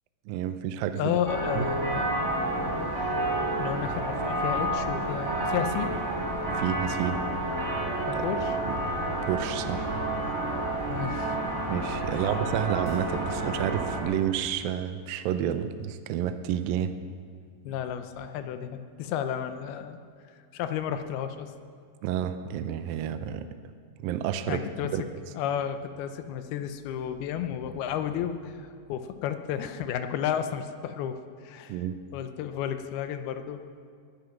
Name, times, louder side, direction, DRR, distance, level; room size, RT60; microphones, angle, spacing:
voice 1, 0.3-1.2 1.6-1.7 6.5-7.2 8.1-8.3 8.7-8.8 9.3-9.9 11.7-17.0 22.0-23.5 24.0-25.0 31.7-32.0, right 10 dB, 85° right, 10 dB, 2.1 m, -30 dB
voice 2, 1.0-2.1 2.6-3.1 3.6-5.9 8.1-8.6 10.9-11.4 12.1-12.3 17.6-20.0 20.5-21.5 24.5-25.1 25.3-31.8 32.1-33.6, left 9 dB, 80° left, 9 dB, 2.5 m, -32 dB
sound 1, 1.3-14.0, right 1 dB, 10° right, 3.9 m, -30 dB
21.0 x 10.5 x 6.0 m, 2.1 s
omnidirectional pair, 4.8 m